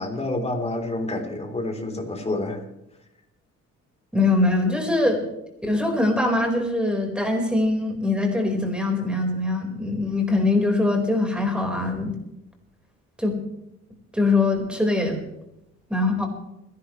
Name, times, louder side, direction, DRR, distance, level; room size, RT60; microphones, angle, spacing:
voice 1, 0.0-2.6, left 2 dB, 20° left, 3 dB, 3.6 m, -28 dB
voice 2, 4.1-5.2 5.6-12.2 13.2-13.3 14.1-15.2 15.9-16.3, left 2 dB, 5° right, 2 dB, 4.6 m, -22 dB
29.5 x 11.5 x 3.2 m, 0.88 s
cardioid pair, 90°, 30 cm